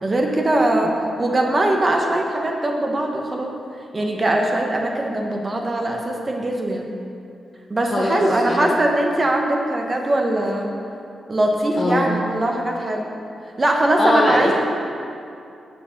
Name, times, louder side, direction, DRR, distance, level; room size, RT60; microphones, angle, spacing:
voice 1, 0.0-3.5 3.9-6.9 7.7-10.7 11.3-13.1 13.6-14.5, right 1 dB, 30° right, 1 dB, 1.3 m, -21 dB
voice 2, 7.9-8.7 11.8-12.2 14.0-14.5, left 2 dB, 35° left, -4 dB, 1.0 m, -22 dB
7.6 x 6.7 x 7.2 m, 2.5 s
cardioid pair, 105°, 0 cm